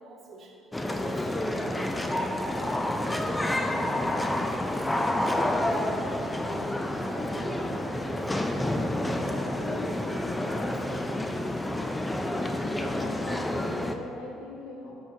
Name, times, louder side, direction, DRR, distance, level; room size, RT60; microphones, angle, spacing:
voice 1, 0.0-4.6 4.9-8.3 9.0-11.4, right 3 dB, 55° right, 0 dB, 1.2 m, -45 dB
sound 1, 0.7-13.9, left 1 dB, 15° left, 0.5 m, -29 dB
voice 2, 9.2-9.9 10.4-10.9 12.5-14.9, left 2 dB, 80° left, -3 dB, 1.5 m, -41 dB
12.0 x 4.6 x 2.9 m, 2.7 s
hypercardioid pair, 60°, 0 cm